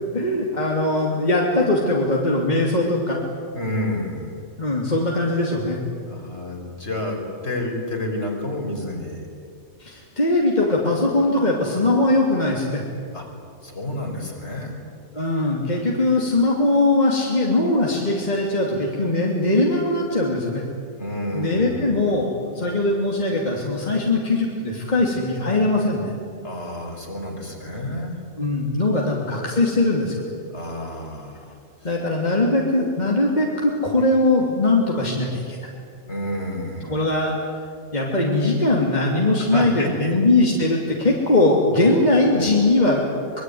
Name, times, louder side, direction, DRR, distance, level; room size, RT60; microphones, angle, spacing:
voice 1, 0.1-3.2 4.6-5.8 9.8-12.8 15.1-20.6 21.3-26.1 28.4-30.1 31.8-35.6 36.9-37.3 37.9-43.0, left 2 dB, 30° left, -3 dB, 3.2 m, -20 dB
voice 2, 3.5-4.4 6.1-9.3 13.1-13.2 13.6-14.7 16.0-16.1 21.0-22.0 26.4-28.2 29.3-29.4 30.5-31.9 36.1-37.0 39.4-40.1 42.2-42.5, left 1 dB, 50° left, 1 dB, 5.3 m, -30 dB
25.0 x 22.5 x 9.6 m, 2.3 s
omnidirectional pair, 1.5 m